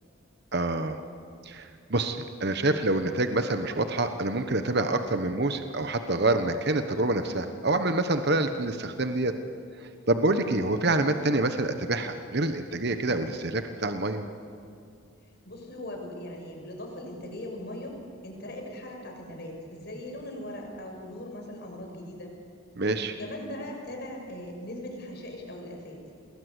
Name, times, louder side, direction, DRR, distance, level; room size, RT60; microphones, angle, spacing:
voice 1, 0.5-1.0 1.4-9.3 9.8-14.2 22.8-23.1, right 2 dB, 55° right, 8 dB, 1.2 m, -27 dB
voice 2, 15.4-22.3 23.1-26.0, left 1 dB, 50° left, 1 dB, 6.3 m, -39 dB
27.5 x 20.5 x 8.2 m, 2.5 s
head